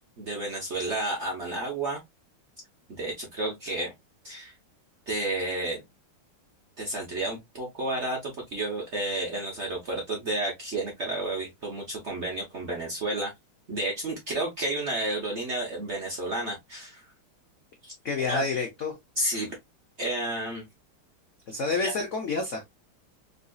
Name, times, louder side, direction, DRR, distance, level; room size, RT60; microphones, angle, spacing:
voice 1, 0.2-2.0 2.9-3.9 4.2-4.5 5.1-5.8 6.8-13.3 13.7-17.0 17.8-17.9 18.2-18.4 19.2-19.5 20.0-20.6 21.8-21.9, right 2 dB, 50° right, 0.8 m, -31 dB
voice 2, 18.0-19.0 21.5-22.6, left 4 dB, 75° left, 0.7 m, -28 dB
3.9 x 2.7 x 2.2 m
omnidirectional pair, 2.3 m